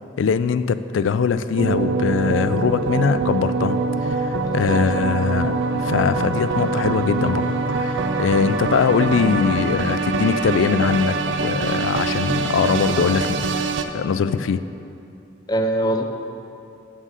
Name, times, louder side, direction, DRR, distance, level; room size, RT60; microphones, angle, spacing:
voice 1, 0.2-13.5 13.9-14.6, left 6 dB, 90° left, 13 dB, 0.4 m, -22 dB
sound 1, 1.6-13.8, right 3 dB, 80° right, 0.5 m, -24 dB
voice 2, 4.6-5.0 15.5-16.0, right 1 dB, 20° left, 5 dB, 0.5 m, -23 dB
7.3 x 6.6 x 6.5 m, 2.7 s
head